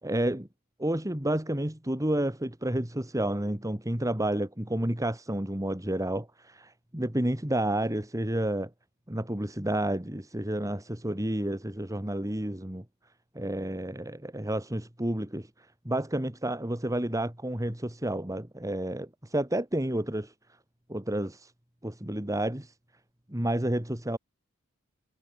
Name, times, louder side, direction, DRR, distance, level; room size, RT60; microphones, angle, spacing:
voice 1, 0.0-0.5 0.8-8.7 9.1-12.8 13.4-20.3 20.9-21.5 21.8-22.7 23.3-24.2, right 1 dB, 15° right, 2.0 m, -30 dB
head